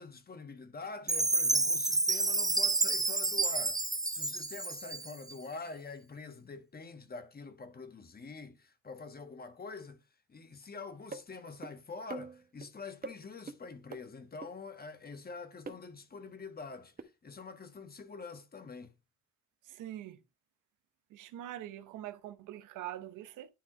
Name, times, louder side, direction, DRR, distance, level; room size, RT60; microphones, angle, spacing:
voice 1, 0.0-3.8 4.1-10.0 10.3-16.9 17.2-18.9, left 4 dB, 30° left, 1.3 m, -45 dB
Chime, 1.1-5.3, right 3 dB, 10° right, 0.7 m, -30 dB
sound 1, 11.1-11.2 11.6-11.7 12.1-12.7 13.0-13.2 13.5-13.6 13.9-14.0 14.4-14.5 15.7-15.8 17.0-17.1, right 4 dB, 30° right, 1.0 m, -42 dB
voice 2, 19.8-20.2 21.1-23.5, right 13 dB, 90° right, 0.9 m, -43 dB
10.5 x 3.5 x 3.6 m
cardioid pair, 90°, 30 cm